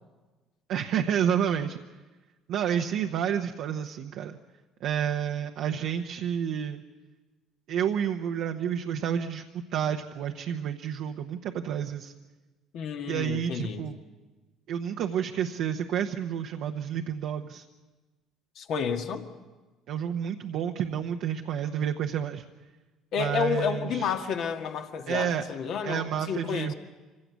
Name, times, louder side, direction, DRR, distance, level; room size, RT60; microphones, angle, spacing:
voice 1, 0.7-1.8 2.5-4.4 4.8-6.8 7.7-12.1 13.1-14.0 14.7-17.6 19.9-22.4 23.2-24.1 25.1-25.4 25.8-26.7, right 9 dB, 70° right, 4 dB, 1.0 m, -30 dB
voice 2, 12.7-13.9 18.6-19.3 23.1-26.7, left 6 dB, 65° left, 4 dB, 1.9 m, -30 dB
24.5 x 16.5 x 8.3 m, 1.2 s
supercardioid pair, 75°, 0 cm